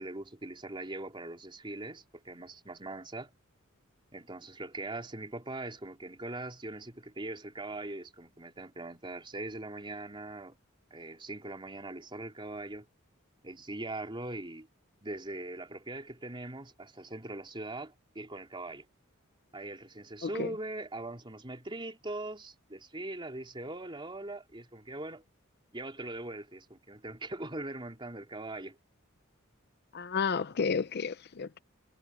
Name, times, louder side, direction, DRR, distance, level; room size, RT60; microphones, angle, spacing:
voice 1, 0.0-3.3 4.1-10.6 10.9-12.9 13.4-14.7 15.0-18.8 19.5-25.2 25.7-28.8, right 2 dB, 25° right, 3.6 m, -41 dB
voice 2, 29.9-31.6, left 5 dB, 50° left, 0.6 m, -31 dB
head